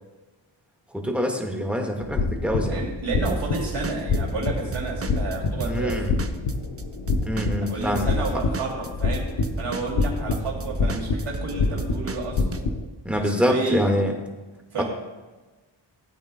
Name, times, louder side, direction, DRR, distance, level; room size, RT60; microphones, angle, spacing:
voice 1, 0.9-2.9 5.6-6.1 7.2-8.4 13.0-14.1 14.8-14.9, equal, ahead, 2 dB, 1.7 m, -25 dB
sound 1, 2.0-12.8, left 3 dB, 80° left, 1.0 m, -27 dB
voice 2, 2.7-6.0 7.6-9.3 9.6-12.4 13.1-13.8 14.7-14.8, right 3 dB, 80° right, -2 dB, 2.9 m, -31 dB
Drum kit / Drum, 3.3-6.8 7.1-12.6, right 4 dB, 30° right, 0.7 m, -34 dB
16.0 x 8.6 x 2.3 m, 1.2 s
cardioid pair, 55°, 50 cm